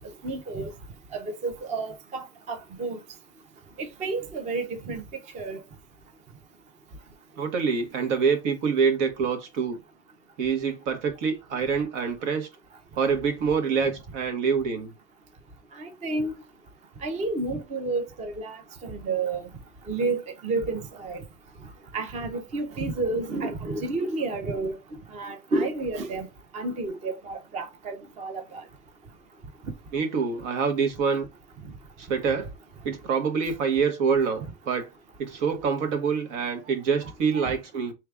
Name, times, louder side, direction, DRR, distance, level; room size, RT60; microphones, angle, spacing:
voice 1, 0.2-0.7 1.1-3.0 4.0-5.0 5.3-5.6 15.8-16.3 17.0-19.5 19.9-21.2 21.9-24.7 25.1-26.3 26.5-28.6 37.3-37.5, right 3 dB, 20° right, 0.5 m, -30 dB
voice 2, 7.4-9.8 10.4-12.5 13.0-14.9 29.9-31.3 32.0-32.5 32.8-34.9 35.2-37.9, right 6 dB, 80° right, 1.4 m, -26 dB
4.7 x 3.3 x 2.3 m
cardioid pair, 155°, 36 cm